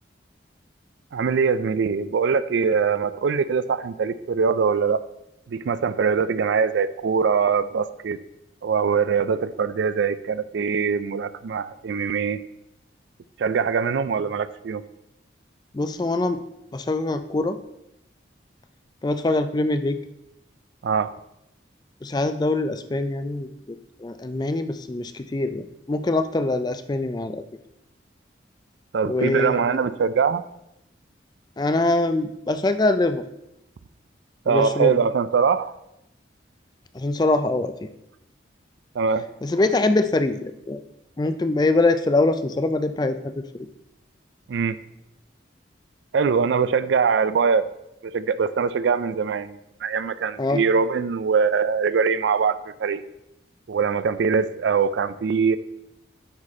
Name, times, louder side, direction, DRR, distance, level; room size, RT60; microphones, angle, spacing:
voice 1, 1.1-5.0 5.5-8.2 8.6-12.4 13.4-14.8 20.8-21.1 28.9-30.4 34.5-35.7 39.0-39.3 44.5-44.8 46.1-47.7 48.0-53.0 53.7-55.6, right 5 dB, 70° right, 14 dB, 0.4 m, -22 dB
voice 2, 15.7-16.4 16.7-17.6 19.0-20.0 22.0-23.8 24.0-27.4 29.0-29.8 31.6-33.2 34.5-35.0 36.9-37.7 39.4-40.8 41.2-43.4 50.4-50.6, left 2 dB, 20° left, 10 dB, 0.3 m, -23 dB
9.6 x 4.2 x 4.2 m, 0.84 s
head